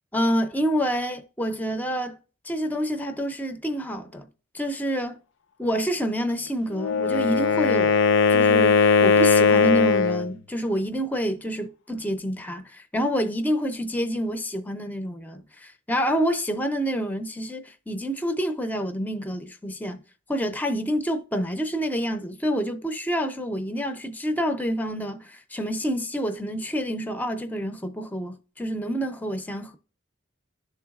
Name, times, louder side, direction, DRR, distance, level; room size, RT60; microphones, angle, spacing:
voice 1, 0.1-2.2 2.4-4.3 4.5-5.2 5.6-8.0 8.3-20.0 20.3-29.8, equal, 10° left, 0.5 m, -28 dB
Wind instrument woodwind instrument, 6.7-10.3, left 5 dB, 65° left, 0.5 m, -19 dB
11.5 x 3.8 x 2.3 m
head